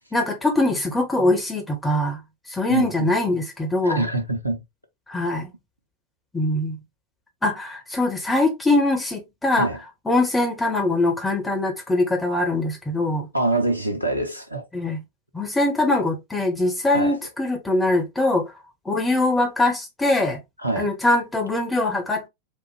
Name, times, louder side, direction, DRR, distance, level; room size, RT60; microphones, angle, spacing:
voice 1, 0.1-2.2 2.5-4.1 5.1-5.5 6.3-6.8 7.4-9.7 10.0-13.3 14.7-15.0 15.3-18.5 18.8-20.4 20.8-22.3, left 2 dB, 10° left, 1.3 m, -22 dB
voice 2, 2.7-3.1 3.8-4.6 9.6-9.8 13.3-14.6 16.9-17.2 20.6-20.9, right 2 dB, 90° right, 1.1 m, -24 dB
4.4 x 2.5 x 3.4 m
figure-of-eight pair, 90°, 0 cm